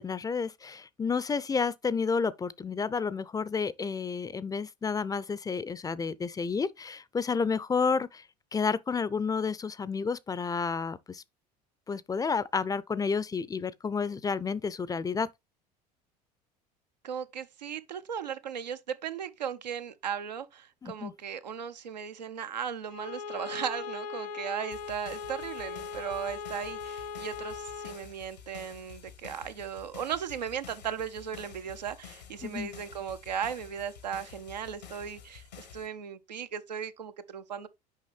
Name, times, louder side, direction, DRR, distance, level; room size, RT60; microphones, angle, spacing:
voice 1, 0.0-8.2 8.5-11.2 11.9-15.3 20.8-21.1 32.4-32.7, left 5 dB, 15° left, 0.4 m, -30 dB
voice 2, 17.0-37.7, right 8 dB, 90° right, 0.6 m, -37 dB
Bowed string instrument, 22.9-28.1, left 5 dB, 70° left, 0.9 m, -39 dB
sound 1, 24.7-35.9, left 7 dB, 85° left, 1.4 m, -50 dB
6.4 x 5.2 x 3.2 m
hypercardioid pair, 70°, 21 cm